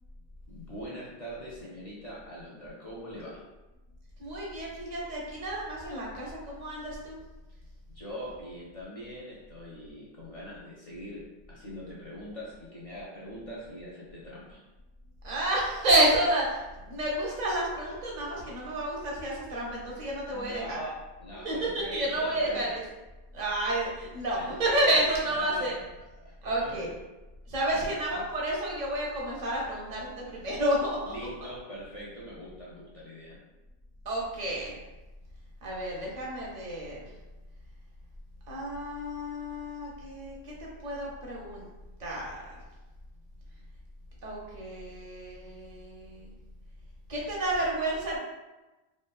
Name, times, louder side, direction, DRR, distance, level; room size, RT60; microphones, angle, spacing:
voice 1, 0.5-3.4 7.9-11.2 11.5-14.6 20.3-22.7 24.3-24.5 25.2-25.8 26.2-26.9 27.7-28.0 31.0-33.4, equal, 45° left, -6 dB, 0.5 m, -42 dB
voice 2, 4.2-7.2 15.2-20.8 21.4-22.8 23.3-25.8 26.4-26.9 27.5-31.1 34.0-34.8 35.6-37.0 38.5-41.7 42.0-42.6 44.2-46.3 47.1-48.2, right 1 dB, 45° right, -4 dB, 0.7 m, -30 dB
2.6 x 2.2 x 2.2 m, 1.1 s
omnidirectional pair, 1.1 m